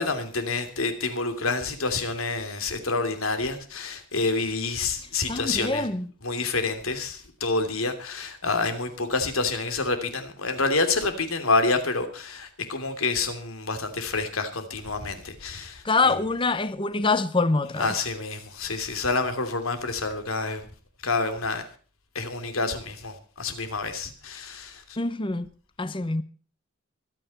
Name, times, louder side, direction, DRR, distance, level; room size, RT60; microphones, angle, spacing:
voice 1, 0.0-5.9 6.2-16.2 17.8-20.7 21.0-21.6 22.1-24.8, left 3 dB, 80° left, 2.9 m, -28 dB
voice 2, 5.3-6.1 15.8-17.9 25.0-25.5 25.8-26.2, left 3 dB, 25° left, 0.8 m, -25 dB
24.0 x 9.0 x 4.3 m
head